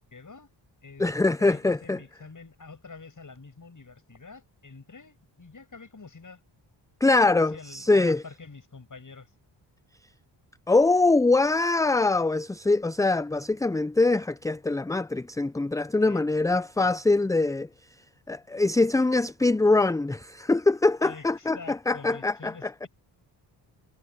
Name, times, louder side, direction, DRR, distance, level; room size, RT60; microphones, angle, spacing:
voice 1, 0.1-0.5 0.8-1.1 1.4-6.4 7.4-9.3 16.0-16.9 21.0-22.9, left 4 dB, 40° left, 7.8 m, -46 dB
voice 2, 1.0-2.0 7.0-8.2 10.7-17.7 18.3-22.7, left 3 dB, 5° left, 0.5 m, -23 dB
supercardioid pair, 50°, 49 cm